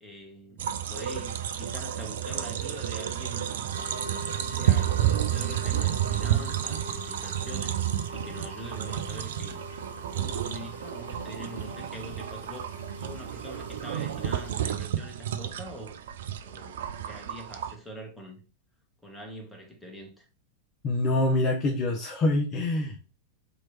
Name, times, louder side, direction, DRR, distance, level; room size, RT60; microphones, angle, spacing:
voice 1, 0.0-3.7 4.4-9.8 10.1-15.9 16.4-18.4 19.0-20.3, equal, 5° left, 1.2 m, -44 dB
sound 1, 0.6-17.7, right 11 dB, 60° right, 0.4 m, -31 dB
sound 2, 3.7-14.5, equal, 80° right, 1.0 m, -43 dB
voice 2, 20.8-23.1, left 2 dB, 30° left, 0.6 m, -25 dB
3.0 x 2.9 x 4.1 m
figure-of-eight pair, 90°, 0 cm